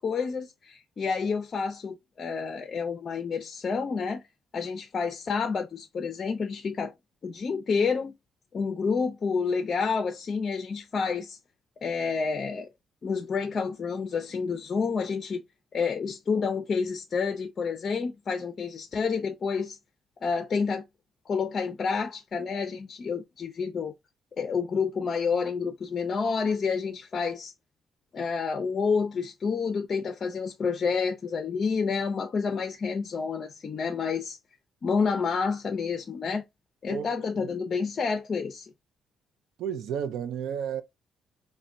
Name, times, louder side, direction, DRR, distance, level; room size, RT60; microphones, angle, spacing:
voice 1, 0.0-4.2 4.5-6.9 7.2-8.1 8.5-11.4 11.8-12.7 13.0-15.4 15.7-19.8 20.2-20.8 21.3-23.9 24.4-27.5 28.1-34.4 34.8-36.4 36.8-38.7, left 5 dB, 45° left, 0.4 m, -29 dB
voice 2, 36.9-37.5 39.6-40.8, right 8 dB, 80° right, 0.4 m, -33 dB
4.2 x 2.1 x 2.4 m
cardioid pair, 90°, 0 cm